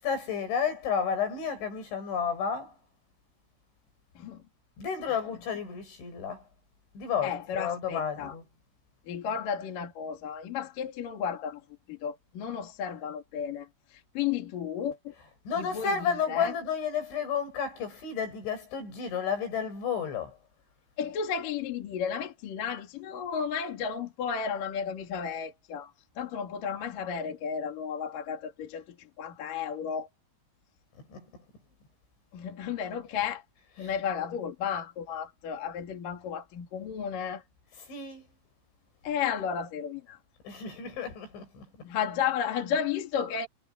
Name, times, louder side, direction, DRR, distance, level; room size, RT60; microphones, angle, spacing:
voice 1, 0.0-2.7 4.8-6.4 6.9-8.4 15.2-20.4 31.1-31.3 33.2-33.3 33.8-34.0 37.8-38.2 40.4-41.6, left 7 dB, 75° left, 10.0 m, -32 dB
voice 2, 7.2-8.3 9.1-11.6 11.9-15.1 15.6-16.5 21.0-25.9 26.2-30.1 32.3-33.4 33.8-37.4 39.0-40.2 41.8-43.5, left 7 dB, 50° left, 3.7 m, -33 dB
omnidirectional pair, 5.4 m